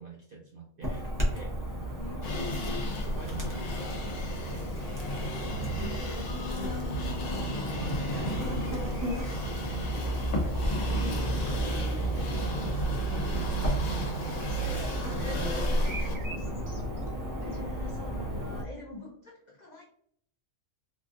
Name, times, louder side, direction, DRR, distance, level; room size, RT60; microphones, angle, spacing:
voice 1, 0.0-1.5 2.1-2.6 3.0-5.0 5.6-6.3 6.8-7.0 7.7-14.6 17.6-17.7, right 3 dB, 90° right, 0 dB, 0.4 m, -45 dB
Chirp tweet / Buzz, 0.8-18.6, right 1 dB, 20° right, 0.5 m, -33 dB
voice 2, 1.9-3.0 6.2-7.6 11.6-12.2 14.5-17.1 17.4-19.8, left 3 dB, 90° left, -2 dB, 0.3 m, -44 dB
sound 1, 2.2-16.2, left 1 dB, 75° left, 1.2 m, -35 dB
3.9 x 2.5 x 2.5 m, 0.67 s
omnidirectional pair, 1.5 m